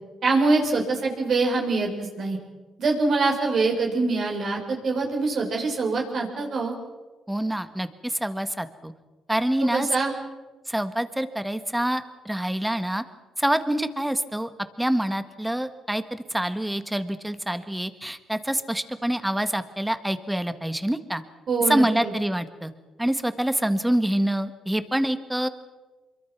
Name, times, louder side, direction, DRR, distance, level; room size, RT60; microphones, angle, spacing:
voice 1, 0.2-2.4 2.8-6.7 9.7-10.1 21.5-22.1, right 3 dB, 55° right, 1 dB, 5.4 m, -24 dB
voice 2, 7.3-8.9 9.3-9.9 10.7-13.0 13.4-14.5 14.8-21.2 21.7-22.7 23.0-25.5, right 1 dB, 5° right, 10 dB, 1.6 m, -26 dB
26.0 x 23.0 x 6.1 m, 1.2 s
cardioid pair, 90°, 0 cm